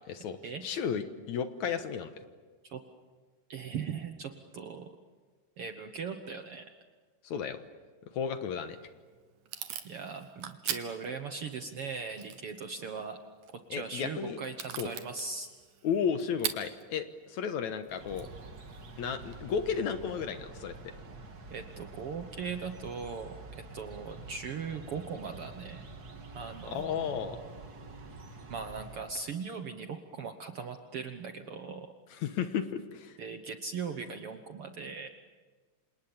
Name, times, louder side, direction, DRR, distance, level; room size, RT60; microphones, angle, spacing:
voice 1, 0.0-2.2 7.2-7.6 8.1-8.8 13.7-14.4 14.8-14.9 15.8-18.3 19.0-20.8 26.7-27.4 32.1-33.2, left 7 dB, 65° left, 9 dB, 2.3 m, -33 dB
voice 2, 3.5-4.9 5.6-6.6 9.8-13.2 13.7-15.5 21.5-25.8 26.3-27.5 28.5-31.9 33.2-35.1, right 5 dB, 60° right, 7 dB, 1.6 m, -39 dB
Packing tape duct tape / Tearing, 8.6-19.4, right 9 dB, 75° right, 3.0 m, -44 dB
sound 1, 17.9-29.3, right 3 dB, 35° right, 1.8 m, -47 dB
29.0 x 27.0 x 7.2 m, 1.4 s
omnidirectional pair, 3.8 m